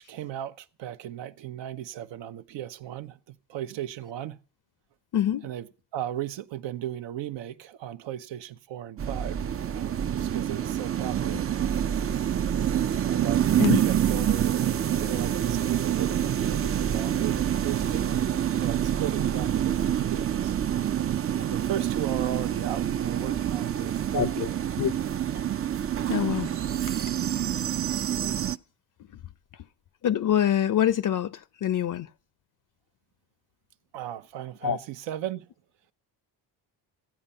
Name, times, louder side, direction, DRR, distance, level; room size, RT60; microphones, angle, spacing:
voice 1, 0.0-4.4 5.4-9.4 9.8-11.6 13.0-18.2 18.6-20.6 21.5-24.8 33.9-35.5, right 11 dB, 65° right, 0.9 m, -36 dB
voice 2, 5.1-5.5 13.6-13.8 24.1-24.5 24.8-24.9 26.1-26.5 30.0-32.1 34.6-34.8, left 10 dB, 45° left, 0.6 m, -25 dB
sound 1, 9.0-28.6, right 10 dB, 30° right, 0.5 m, -27 dB
14.5 x 8.9 x 5.5 m
supercardioid pair, 60°, 47 cm